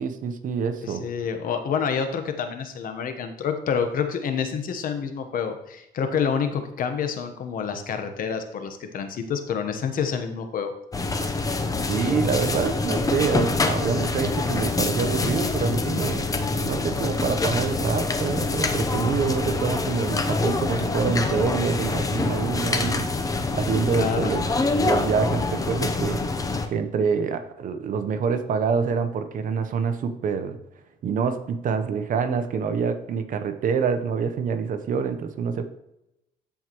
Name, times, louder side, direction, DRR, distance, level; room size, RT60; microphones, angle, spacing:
voice 1, 0.0-1.0 11.9-23.1 23.5-24.5 24.8-26.2 26.7-30.6 31.0-35.6, right 6 dB, 50° right, 9 dB, 0.8 m, -26 dB
voice 2, 0.8-10.7 23.9-24.3, left 6 dB, 55° left, 7 dB, 1.1 m, -28 dB
sound 1, 10.9-26.7, left 3 dB, 20° left, 0.7 m, -25 dB
13.5 x 4.7 x 3.0 m, 0.85 s
cardioid pair, 110°, 17 cm